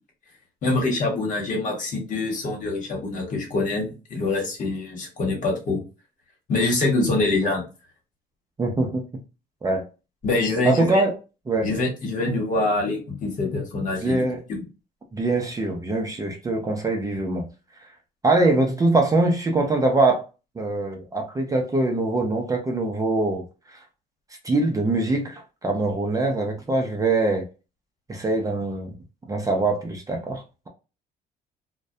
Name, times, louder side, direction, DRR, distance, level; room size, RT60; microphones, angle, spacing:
voice 1, 0.6-5.8 6.5-7.6 10.2-11.0 11.6-14.2, left 2 dB, 50° left, 1.1 m, -25 dB
voice 2, 8.6-9.0 9.6-9.8 10.6-11.2 11.5-11.7 14.0-14.4 15.1-17.5 18.2-20.2 20.6-23.4 24.4-27.4 28.1-28.9 29.3-30.7, right 2 dB, 20° right, 0.4 m, -23 dB
2.2 x 2.1 x 2.6 m
cardioid pair, 110°, 17 cm